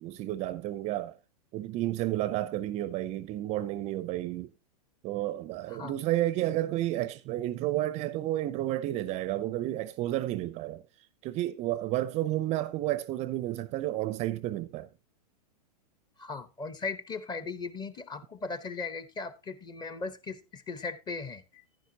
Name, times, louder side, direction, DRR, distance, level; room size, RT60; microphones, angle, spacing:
voice 1, 0.0-1.2 1.5-4.5 5.0-10.8 11.2-14.9, right 14 dB, 35° right, 0.5 m, -31 dB
voice 2, 16.2-21.6, left 4 dB, 20° left, 1.0 m, -38 dB
10.5 x 10.0 x 2.8 m
hypercardioid pair, 115°, 20 cm